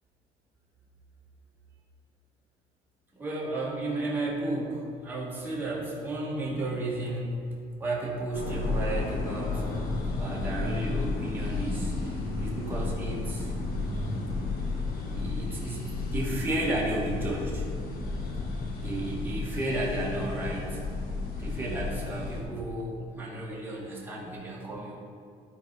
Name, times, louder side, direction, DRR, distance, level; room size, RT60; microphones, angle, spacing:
voice 1, 3.1-7.4 7.8-9.6 10.2-13.5 15.1-17.7 18.8-20.8 21.4-25.0, right 1 dB, 10° right, -6 dB, 2.1 m, -33 dB
sound 1, 8.3-22.4, left 3 dB, 60° left, 1.5 m, -32 dB
12.0 x 4.2 x 5.1 m, 2.3 s
cardioid pair, 110°, 17 cm